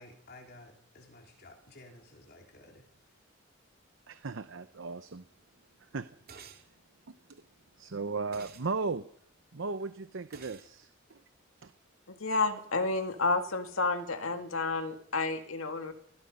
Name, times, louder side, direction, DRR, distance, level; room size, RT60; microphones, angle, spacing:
voice 1, 0.0-2.8, left 2 dB, 55° left, 2 dB, 3.9 m, -53 dB
voice 2, 4.1-5.2 5.9-6.1 7.1-7.4 7.8-9.0 9.5-11.2 11.6-11.7, right 4 dB, 65° right, 12 dB, 0.8 m, -36 dB
sound 1, 6.3-6.7 8.3-8.7 10.3-10.7, right 6 dB, 50° right, 2.7 m, -50 dB
voice 3, 12.1-15.9, left 3 dB, 90° left, 6 dB, 2.2 m, -30 dB
29.0 x 21.0 x 5.5 m, 0.71 s
head